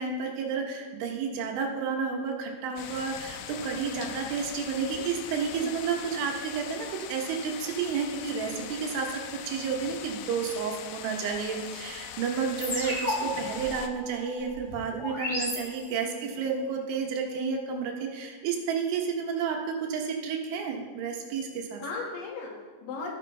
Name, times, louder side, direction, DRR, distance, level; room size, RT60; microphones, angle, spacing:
voice 1, 0.0-21.8, right 5 dB, 80° right, 2 dB, 3.6 m, -31 dB
sound 1, 2.8-13.9, left 9 dB, 90° left, 3.2 m, -41 dB
sound 2, 12.6-16.3, left 1 dB, 30° left, 2.8 m, -34 dB
voice 2, 16.0-16.4 21.8-23.1, left 3 dB, 75° left, -3 dB, 4.4 m, -38 dB
14.0 x 9.5 x 3.4 m, 1.4 s
omnidirectional pair, 5.6 m